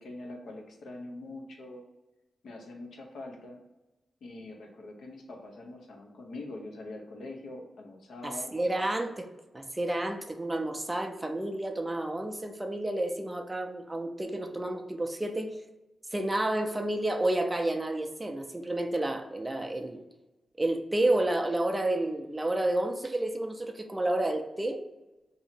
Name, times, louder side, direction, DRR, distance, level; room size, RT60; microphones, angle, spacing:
voice 1, 0.0-1.8 2.4-3.6 4.2-8.5, left 2 dB, 85° left, 2 dB, 0.7 m, -43 dB
voice 2, 8.2-9.3 9.5-15.6 16.1-20.0 20.6-24.8, right 1 dB, 15° right, 5 dB, 0.3 m, -30 dB
2.7 x 2.7 x 4.2 m, 1.0 s
wide cardioid pair, 165°, 0 cm